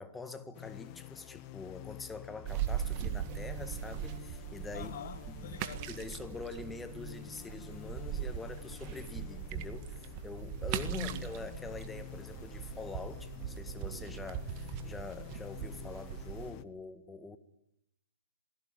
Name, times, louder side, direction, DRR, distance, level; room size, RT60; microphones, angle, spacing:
voice 1, 0.0-4.9 5.3-5.6 5.9-17.4, left 4 dB, 10° left, 1.6 m, -45 dB
sound 1, 0.5-16.6, left 15 dB, 30° left, 1.1 m, -49 dB
sound 2, 2.5-16.5, right 10 dB, 30° right, 1.7 m, -40 dB
voice 2, 4.7-6.1 10.9-11.2, left 9 dB, 50° left, 2.4 m, -44 dB
27.0 x 18.0 x 10.0 m
figure-of-eight pair, 125°, 0 cm